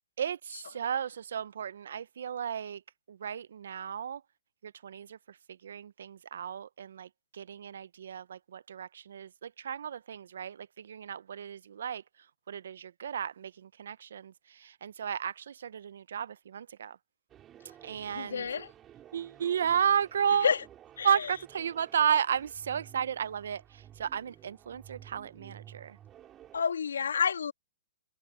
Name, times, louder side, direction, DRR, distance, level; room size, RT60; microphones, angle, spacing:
voice 1, 0.2-2.8 3.1-4.2 4.6-5.2 5.6-7.1 7.3-12.0 12.5-17.0 17.8-18.5 19.1-20.5 21.0-26.0, right 8 dB, 70° right, 0.8 m, -33 dB
sound 1, 17.3-26.6, right 11 dB, 20° right, 5.6 m, -54 dB
voice 2, 18.1-18.7 20.4-20.6 21.0-21.3 26.5-27.5, left 6 dB, 85° left, 2.9 m, -29 dB
hypercardioid pair, 140°, 0 cm